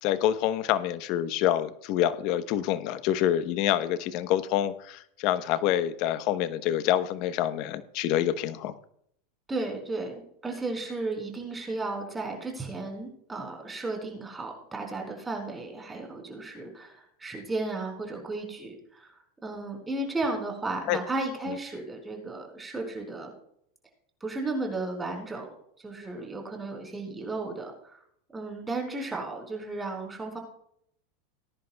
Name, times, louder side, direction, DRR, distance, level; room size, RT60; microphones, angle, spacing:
voice 1, 0.0-8.8 20.9-21.0 21.5-21.6, left 12 dB, 55° left, 13 dB, 0.9 m, -27 dB
voice 2, 9.5-19.1 19.4-23.3 24.2-25.5 25.8-28.0 28.3-30.4, right 2 dB, 15° right, 2 dB, 4.6 m, -34 dB
20.0 x 10.5 x 2.3 m, 0.70 s
hypercardioid pair, 115°, 0 cm